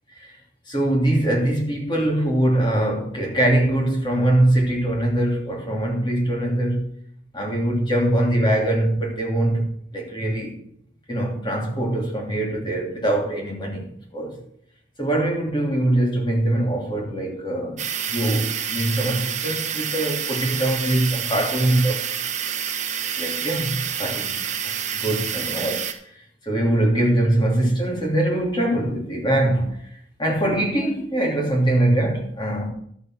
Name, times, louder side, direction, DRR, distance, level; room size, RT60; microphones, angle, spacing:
voice 1, 0.7-6.9 7.3-10.6 11.1-14.4 15.0-17.8 18.1-22.0 23.2-24.3 24.6-24.7 25.0-25.8 26.1-29.8 30.2-32.7, right 1 dB, 25° left, 2.9 m, -22 dB
sound 1, 17.8-25.9, right 8 dB, 40° right, 1.3 m, -28 dB
12.0 x 6.8 x 6.2 m
head